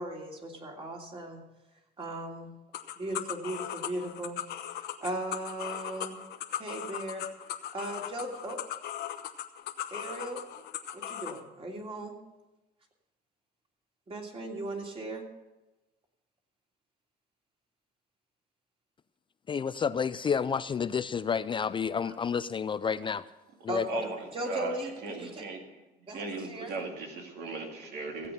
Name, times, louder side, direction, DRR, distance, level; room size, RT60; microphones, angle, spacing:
voice 1, 0.0-1.4 2.0-2.5 3.0-4.4 4.6-6.2 6.6-8.6 9.9-10.4 10.9-12.2 14.1-15.2 22.0-22.2 22.8-22.9 23.7-25.5 26.1-26.8, right 1 dB, 35° right, 3.0 m, -38 dB
sound 1, 2.7-11.4, left 11 dB, 75° left, 1.1 m, -38 dB
voice 2, 19.5-23.2 23.6-23.9, left 6 dB, 30° left, 0.4 m, -30 dB
voice 3, 23.9-24.2 24.4-24.7 25.0-25.6 26.1-28.3, right 3 dB, 80° right, 2.5 m, -37 dB
16.0 x 8.4 x 6.7 m
cardioid pair, 110°, 17 cm